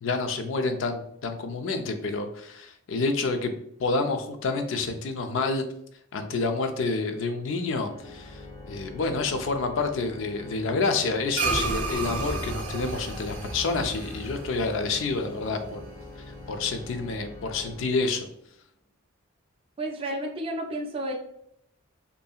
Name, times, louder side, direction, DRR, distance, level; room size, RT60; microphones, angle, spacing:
voice 1, 0.0-3.5 3.8-5.6 6.1-8.4 8.7-15.8 16.5-18.3, left 3 dB, 65° left, 7 dB, 0.4 m, -28 dB
Organ, 7.8-18.5, left 2 dB, 20° left, 0.7 m, -44 dB
sound 1, 11.3-16.0, right 3 dB, 75° right, 0.6 m, -32 dB
voice 2, 19.8-21.1, right 1 dB, 25° right, 0 dB, 0.4 m, -31 dB
2.7 x 2.5 x 2.3 m, 0.72 s
head